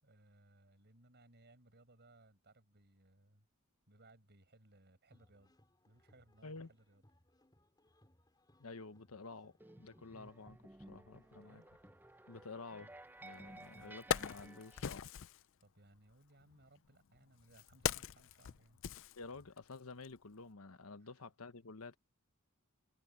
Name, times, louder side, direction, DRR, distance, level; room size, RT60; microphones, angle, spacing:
voice 1, 0.0-3.5 3.9-5.5 5.9-7.0 11.2-11.7 15.6-18.8 21.0-21.1, right 1 dB, 55° right, 6.2 m, -65 dB
sound 1, 5.1-14.7, left 1 dB, 20° left, 3.4 m, -70 dB
voice 2, 8.6-10.6 10.9-11.6 12.3-12.9 13.2-15.1 19.2-22.0, left 3 dB, 85° left, 1.1 m, -51 dB
sound 2, 9.6-15.1, right 1 dB, 10° right, 0.6 m, -56 dB
Wood, 13.3-13.4 13.8-15.4 16.4-19.7 20.0-20.2, left 8 dB, 65° left, 0.5 m, -40 dB
head